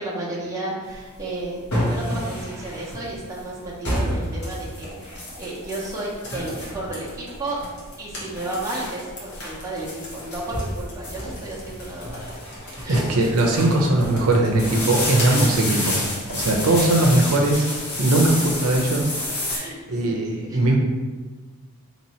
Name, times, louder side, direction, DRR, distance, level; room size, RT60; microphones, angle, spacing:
voice 1, 0.0-7.6 8.0-12.3 12.8-13.1 15.2-15.4 15.7-15.8 16.6-16.7 19.5-19.8 20.1-20.6, right 2 dB, 15° right, -6 dB, 0.8 m, -33 dB
sound 1, 0.9-19.6, left 1 dB, 80° left, 1.3 m, -30 dB
Computer keyboard, 3.9-17.4, left 1 dB, 50° left, 1.1 m, -39 dB
voice 2, 12.9-15.9 16.3-17.7 18.0-19.1 19.9-20.8, right 2 dB, 80° right, 0 dB, 0.6 m, -19 dB
3.0 x 2.9 x 4.2 m, 1.3 s
head